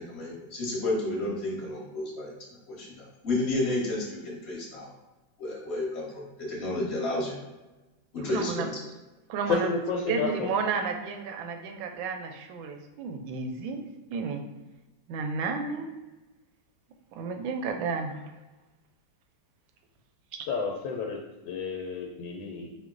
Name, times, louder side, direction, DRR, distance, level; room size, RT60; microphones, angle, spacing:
voice 1, 0.0-2.3 2.7-3.0 3.2-4.9 5.4-7.4 8.1-8.7, left 2 dB, 40° left, -4 dB, 1.1 m, -31 dB
voice 2, 8.2-8.7 9.3-9.7 10.1-13.8 14.1-14.4 15.1-15.9 17.1-18.2 20.3-20.5, right 5 dB, 85° right, 5 dB, 1.3 m, -32 dB
voice 3, 9.5-10.5 20.5-21.2 21.4-22.7, left 4 dB, 85° left, -1 dB, 1.3 m, -30 dB
4.7 x 2.1 x 3.7 m, 1.1 s
omnidirectional pair, 2.1 m